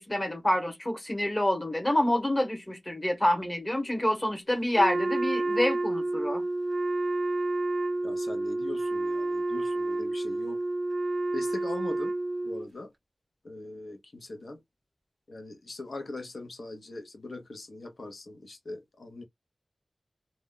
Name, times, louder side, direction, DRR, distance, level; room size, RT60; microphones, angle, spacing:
voice 1, 0.0-6.4, left 1 dB, 20° left, 1.0 m, -27 dB
Wind instrument woodwind instrument, 4.8-12.7, right 2 dB, 60° right, 0.4 m, -29 dB
voice 2, 8.0-10.6 11.3-12.1 12.4-12.9 13.4-14.6 15.3-19.2, left 2 dB, 75° left, 0.7 m, -41 dB
2.2 x 2.1 x 3.6 m
wide cardioid pair, 75°, 0 cm